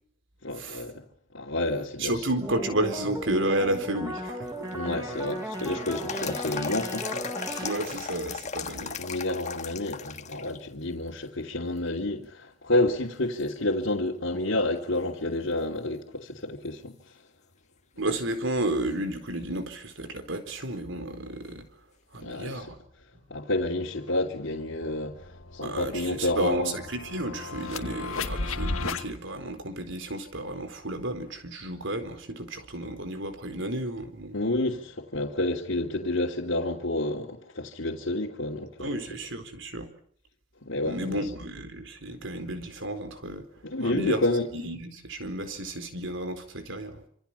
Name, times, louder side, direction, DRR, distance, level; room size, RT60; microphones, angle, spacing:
voice 1, 0.4-1.0 1.3-2.2 4.7-7.3 8.8-17.0 22.2-22.7 23.3-26.7 34.3-39.0 40.6-41.2 43.6-44.5, left 2 dB, 65° left, 2.9 m, -29 dB
voice 2, 2.0-4.7 7.5-9.0 18.0-21.6 22.1-22.8 25.6-34.4 38.8-39.9 40.8-43.5 43.8-44.2 44.5-47.0, right 1 dB, 65° right, 4.2 m, -32 dB
sound 1, 2.4-7.7, right 1 dB, 15° right, 7.5 m, -36 dB
sound 2, 4.5-10.6 11.0-11.1 11.8-12.3 12.8-12.9 13.4-14.6 14.9-15.0 18.4-18.5 21.5-21.6, left 6 dB, 35° left, 1.7 m, -37 dB
sound 3, 23.6-23.7 24.1-29.1, left 3 dB, 85° left, 1.7 m, -35 dB
28.5 x 26.5 x 5.7 m
head